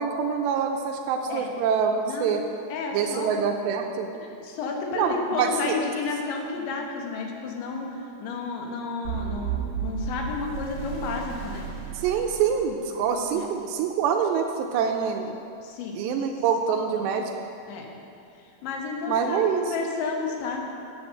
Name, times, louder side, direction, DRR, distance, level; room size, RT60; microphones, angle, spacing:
voice 1, 0.0-2.4 2.9-4.1 5.0-5.7 12.0-15.4 16.0-17.3 19.1-19.7, right 7 dB, 85° right, 4 dB, 2.6 m, -25 dB
voice 2, 2.7-3.3 4.2-7.9 8.2-11.7 13.3-13.5 15.6-16.0 16.9-17.0 17.7-17.9 18.6-20.6, left 4 dB, 80° left, 1 dB, 3.5 m, -31 dB
sound 1, 9.0-13.2, right 8 dB, 55° right, 2.7 m, -33 dB
9.6 x 8.2 x 7.5 m, 2.6 s
omnidirectional pair, 5.3 m